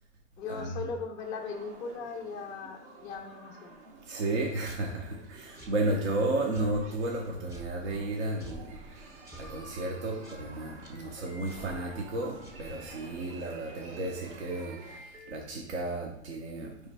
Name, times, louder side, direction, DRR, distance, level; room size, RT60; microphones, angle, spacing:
voice 1, 0.4-3.8, left 5 dB, 10° left, 0 dB, 0.3 m, -38 dB
sound 1, 1.2-15.0, right 3 dB, 40° right, 0.8 m, -51 dB
voice 2, 4.0-16.7, right 2 dB, 65° right, 0 dB, 0.9 m, -33 dB
sound 2, 4.4-13.2, right 1 dB, 10° right, 0.8 m, -51 dB
sound 3, 10.2-15.3, right 2 dB, 80° right, 1.4 m, -52 dB
4.7 x 3.2 x 3.4 m, 0.74 s
figure-of-eight pair, 100°, 37 cm